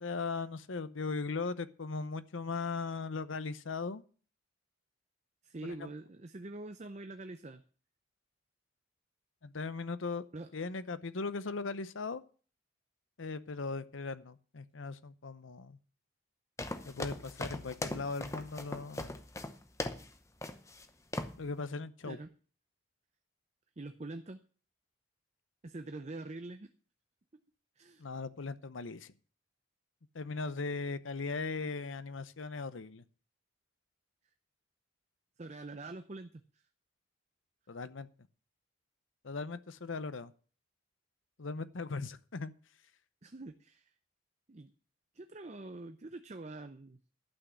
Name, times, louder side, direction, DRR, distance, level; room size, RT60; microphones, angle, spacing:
voice 1, 0.0-4.0 5.6-5.9 9.4-10.2 10.5-12.2 13.2-15.8 16.8-19.2 21.4-22.2 28.0-29.1 30.1-33.0 37.7-38.1 39.2-40.3 41.4-42.5, left 4 dB, 80° left, 14 dB, 0.8 m, -38 dB
voice 2, 5.4-7.6 10.3-10.5 22.0-22.3 23.8-24.4 25.6-26.7 27.8-28.0 35.4-36.6 43.2-43.9 44.5-44.7 45.1-47.0, right 2 dB, 35° right, 8 dB, 0.6 m, -45 dB
sound 1, 16.6-20.1 20.4-20.8 21.1-21.4, left 2 dB, 15° left, 0.8 m, -39 dB
11.5 x 6.2 x 8.0 m, 0.41 s
head